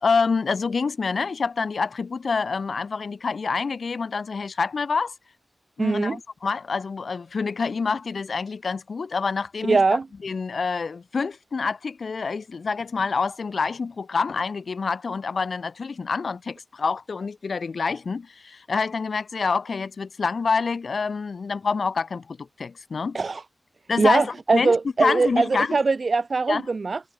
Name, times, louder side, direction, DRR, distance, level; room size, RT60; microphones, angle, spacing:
voice 1, 0.0-5.1 5.8-9.8 10.2-23.2 23.9-25.8 26.5-26.6, left 4 dB, 70° left, 1.8 m, -27 dB
voice 2, 5.8-6.2 9.7-10.1 23.1-23.4 24.0-27.0, right 4 dB, 60° right, 0.4 m, -22 dB
wide cardioid pair, 65°, 0 cm